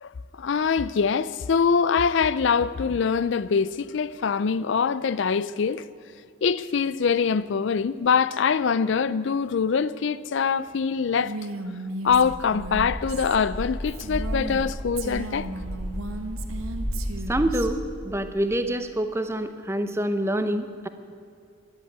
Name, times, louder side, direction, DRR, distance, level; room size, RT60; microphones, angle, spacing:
voice 1, 0.0-5.8 6.4-11.4 12.0-15.5, left 6 dB, 60° left, 0.4 m, -24 dB
Female speech woman speaking, 11.2-14.6 15.0-17.7, right 2 dB, 80° right, 1.2 m, -36 dB
sound 1, 12.1-17.7, equal, 40° left, 2.7 m, -33 dB
voice 2, 17.3-20.9, right 1 dB, 10° right, 0.7 m, -26 dB
13.5 x 11.5 x 9.4 m
head